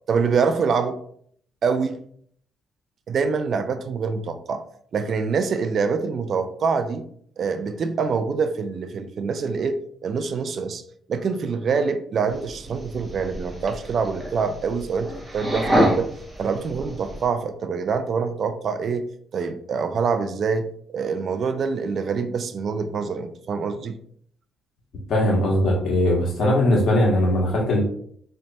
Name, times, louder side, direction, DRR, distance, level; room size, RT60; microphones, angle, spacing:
voice 1, 0.1-1.0 1.6-2.0 3.1-4.6 4.9-7.1 7.4-10.8 11.1-16.1 16.4-19.1 19.3-20.7 20.9-24.0, right 5 dB, 55° right, 10 dB, 0.4 m, -25 dB
sound 1, 12.3-17.3, equal, 15° right, 1.2 m, -27 dB
voice 2, 25.1-27.8, left 1 dB, 65° left, -2 dB, 1.4 m, -20 dB
4.0 x 3.2 x 2.8 m, 0.63 s
cardioid pair, 90°, 0 cm